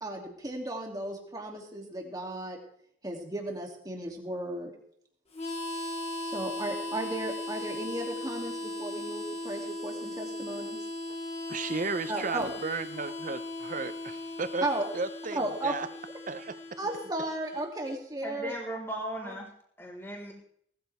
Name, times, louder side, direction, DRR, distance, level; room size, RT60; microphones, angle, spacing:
voice 1, 0.0-2.6 3.0-4.7 6.2-10.8 12.1-12.5 14.6-14.8 15.3-15.7 16.8-18.5 19.2-19.4, right 1 dB, 20° right, 1 dB, 2.7 m, -35 dB
Harmonica, 5.3-18.0, left 2 dB, 35° left, 2.3 m, -38 dB
voice 2, 11.5-14.6 14.9-15.9 16.3-16.8, right 4 dB, 45° right, 13 dB, 0.7 m, -34 dB
voice 3, 18.2-19.5 19.8-20.3, right 1 dB, 15° left, -4 dB, 3.9 m, -37 dB
19.0 x 14.0 x 3.5 m, 0.66 s
head